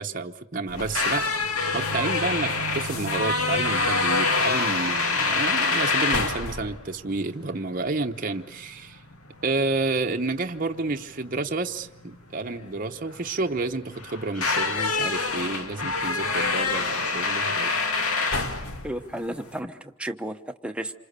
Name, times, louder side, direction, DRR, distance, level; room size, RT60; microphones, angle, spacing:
voice 1, 0.0-1.5 1.7-9.0 9.4-17.7, right 3 dB, 40° right, 4 dB, 0.9 m, -30 dB
sound 1, 0.7-19.6, left 3 dB, 85° left, 2.3 m, -27 dB
voice 2, 18.8-20.9, right 1 dB, 5° right, 6 dB, 1.0 m, -33 dB
28.0 x 26.0 x 6.8 m, 0.85 s
head